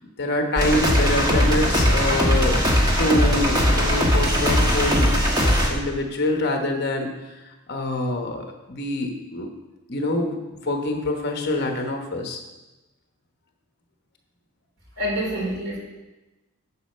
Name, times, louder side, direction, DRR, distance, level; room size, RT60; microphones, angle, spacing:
voice 1, 0.2-2.6 3.0-5.1 5.4-7.1 7.7-9.5 9.9-12.4, left 1 dB, 45° left, 3 dB, 1.1 m, -25 dB
sound 1, 0.6-5.7, equal, 20° right, 1.3 m, -19 dB
voice 2, 15.0-15.8, equal, 75° right, -4 dB, 4.0 m, -26 dB
9.9 x 5.2 x 6.7 m, 1.1 s
head